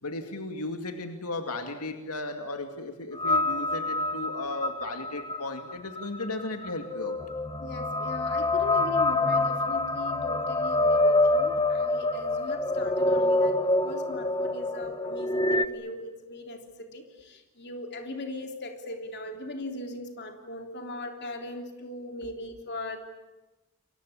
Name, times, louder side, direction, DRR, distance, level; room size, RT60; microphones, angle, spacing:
voice 1, 0.0-7.2 11.6-11.7 22.2-22.3, left 2 dB, 85° left, 6 dB, 2.4 m, -35 dB
sound 1, 3.2-15.6, left 2 dB, 20° left, 1.2 m, -26 dB
voice 2, 7.6-16.6 16.9-23.0, left 1 dB, 50° left, 4 dB, 3.4 m, -39 dB
29.0 x 23.5 x 8.6 m, 1.1 s
head